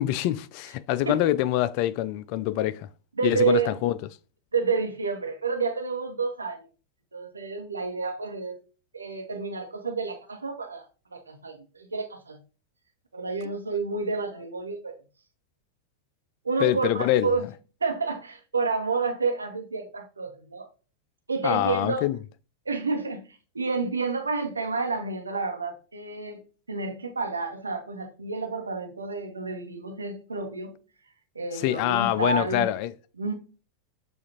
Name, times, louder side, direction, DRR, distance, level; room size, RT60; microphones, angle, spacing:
voice 1, 0.0-2.9 3.2-4.0 16.6-17.3 21.4-22.2 31.5-32.9, left 13 dB, 45° left, 0.3 m, -25 dB
voice 2, 3.2-3.7 4.5-6.7 7.1-8.6 8.9-10.8 11.1-12.4 13.1-15.0 16.4-17.5 17.8-20.7 21.3-22.1 22.7-26.4 26.7-30.7 31.3-32.7 33.2-33.3, right 4 dB, 75° right, 0.9 m, -29 dB
7.1 x 2.5 x 2.9 m
figure-of-eight pair, 90°, 0 cm